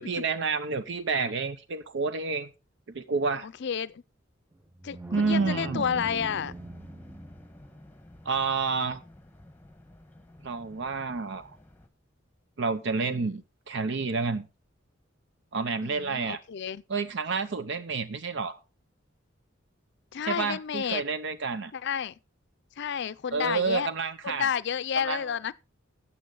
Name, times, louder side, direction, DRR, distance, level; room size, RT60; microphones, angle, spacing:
voice 1, 0.0-2.5 2.9-3.5 5.1-5.8 8.2-9.0 10.4-11.5 12.6-13.4 13.7-14.5 15.5-16.4 16.9-18.6 20.2-21.7 23.3-24.5 25.0-25.4, right 4 dB, 65° right, 0.7 m, -29 dB
voice 2, 3.4-4.0 4.8-6.5 13.1-13.2 15.8-16.8 20.1-21.0 21.7-22.1 22.8-23.9 24.2-25.5, left 7 dB, 60° left, 0.5 m, -31 dB
sound 1, 4.5-7.8, right 2 dB, 10° right, 0.5 m, -41 dB
sound 2, 5.8-11.9, left 1 dB, 10° left, 1.3 m, -51 dB
13.0 x 8.5 x 3.8 m
head